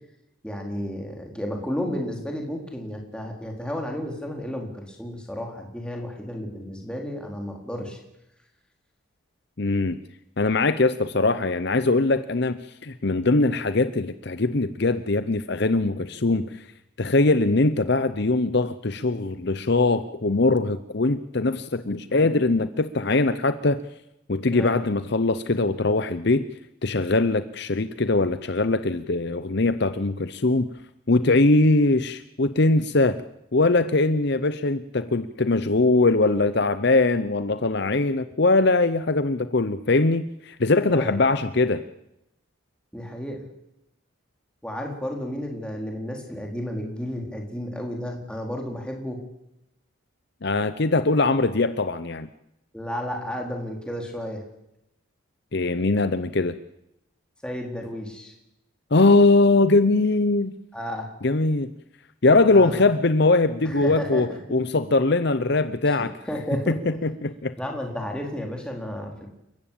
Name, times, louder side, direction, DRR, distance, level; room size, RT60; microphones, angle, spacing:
voice 1, 0.4-8.0 24.5-24.8 40.9-41.2 42.9-43.4 44.6-49.2 52.7-54.4 57.4-58.3 60.7-61.1 62.5-62.8 63.6-64.6 65.9-66.0 66.3-67.0 67.6-69.3, equal, 5° left, 1 dB, 4.2 m, -32 dB
voice 2, 9.6-10.0 10.4-16.6 17.0-23.8 24.3-26.5 26.8-30.7 31.1-33.2 33.5-41.8 50.4-52.3 55.5-56.6 58.9-60.5 61.2-61.7 62.2-66.1 66.7-67.5, left 2 dB, 50° left, 12 dB, 0.8 m, -21 dB
29.0 x 14.5 x 8.8 m, 0.86 s
head